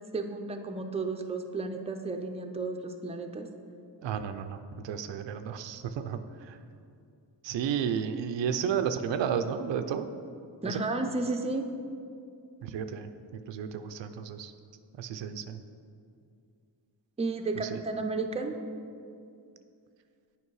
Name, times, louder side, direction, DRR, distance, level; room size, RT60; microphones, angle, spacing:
voice 1, 0.1-3.5 10.6-11.7 17.2-18.5, right 3 dB, 15° right, 5 dB, 0.5 m, -32 dB
voice 2, 4.0-4.6 4.8-6.2 6.5-6.6 7.4-10.1 10.6-10.8 12.6-13.1 13.5-14.5 15.0-15.6 17.7-17.8, right 8 dB, 80° right, 9 dB, 0.6 m, -32 dB
8.3 x 5.2 x 4.7 m, 2.4 s
cardioid pair, 90°, 43 cm